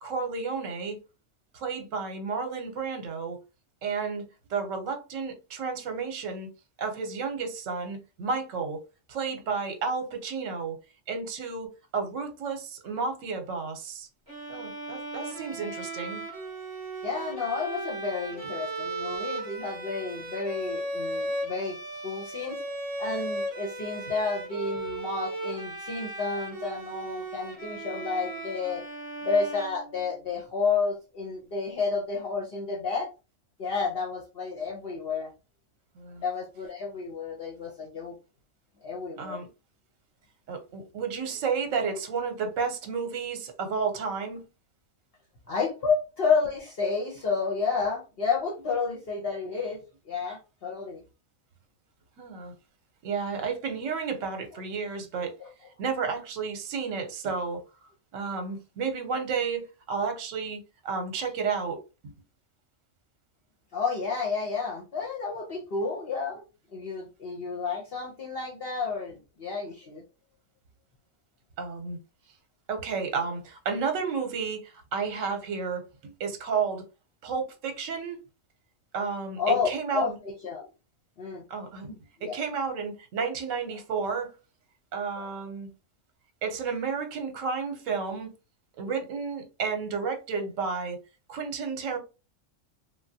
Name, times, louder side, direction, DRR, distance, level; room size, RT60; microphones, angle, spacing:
voice 1, 0.0-1.0 1.5-3.4 3.8-4.2 4.5-6.5 6.8-8.8 9.1-10.8 11.1-14.1 14.5-16.2 35.9-36.2 39.2-39.5 40.5-44.5 52.2-52.5 53.0-55.3 55.8-57.6 58.1-62.1 71.6-72.0 72.7-76.8 77.2-78.2 78.9-80.2 81.5-81.9 82.2-84.3 84.9-85.7 86.4-88.3 88.8-91.0 91.3-92.0, right 5 dB, 75° right, 1.0 m, -32 dB
Bowed string instrument, 14.3-30.4, right 2 dB, 20° right, 0.7 m, -36 dB
voice 2, 17.0-21.8 22.0-22.6 23.0-28.8 29.2-33.1 33.6-35.3 36.2-38.1 38.8-39.4 45.5-51.0 55.4-55.5 58.3-58.4 63.7-66.4 66.7-70.0 79.4-80.7 81.2-81.4 81.9-82.4 85.2-85.3, left 5 dB, 55° left, 0.8 m, -31 dB
3.2 x 2.3 x 2.6 m
omnidirectional pair, 1.3 m